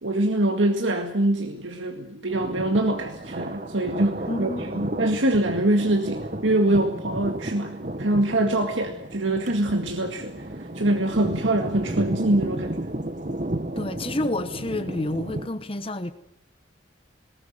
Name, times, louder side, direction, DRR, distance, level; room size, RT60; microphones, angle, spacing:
voice 1, 0.0-12.9, right 1 dB, 85° right, 2.0 m, -24 dB
Thunder, 2.3-15.5, right 1 dB, 40° right, 1.4 m, -33 dB
voice 2, 4.3-4.9 13.8-16.1, left 1 dB, 30° left, 1.0 m, -29 dB
20.5 x 18.5 x 9.3 m
head